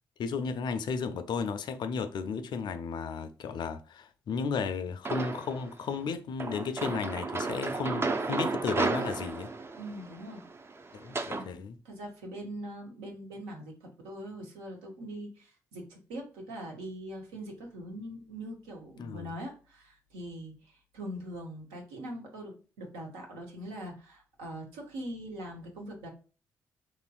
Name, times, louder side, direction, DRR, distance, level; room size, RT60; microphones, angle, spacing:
voice 1, 0.2-9.5 10.9-11.8 19.0-19.3, left 5 dB, 55° left, 0.4 m, -34 dB
sound 1, 5.1-5.7 6.4-11.5, right 3 dB, 30° right, 0.5 m, -33 dB
voice 2, 9.8-10.4 11.3-26.1, right 1 dB, 80° right, 0.8 m, -42 dB
3.0 x 2.5 x 2.3 m
hypercardioid pair, 45°, 9 cm